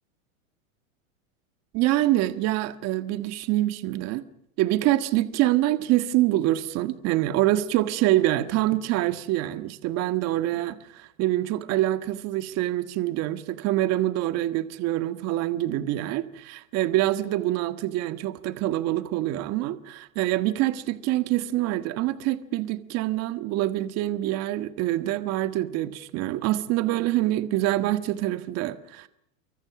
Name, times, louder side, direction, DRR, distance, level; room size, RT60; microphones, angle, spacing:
voice 1, 1.7-4.2 4.6-29.1, right 15 dB, 40° right, 1.7 m, -25 dB
28.5 x 24.5 x 6.1 m
supercardioid pair, 145°, 40 cm